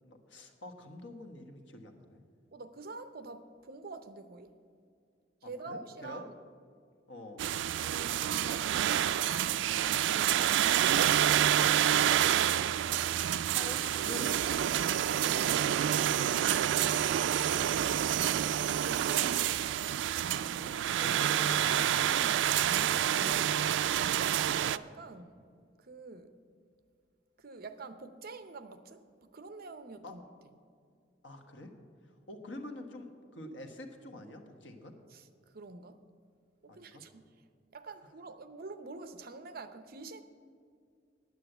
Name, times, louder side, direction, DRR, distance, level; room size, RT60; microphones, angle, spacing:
voice 1, 0.0-2.2 5.4-6.3 7.1-7.4 13.5-14.5 15.2-15.5 15.8-18.1 20.3-23.7 30.0-30.1 31.2-31.7 32.0-34.9 36.7-37.0, left 1 dB, 85° left, 5 dB, 1.3 m, -47 dB
voice 2, 2.5-4.5 5.4-6.4 7.8-10.5 11.0-12.6 18.3-19.7 24.1-25.4 25.8-26.4 27.4-30.2 35.1-35.3 35.5-36.0 36.6-37.2 37.7-40.2, right 3 dB, 55° right, 10 dB, 0.7 m, -47 dB
sound 1, 7.4-24.8, right 10 dB, 80° right, 0.3 m, -28 dB
9.5 x 9.3 x 7.9 m, 2.2 s
head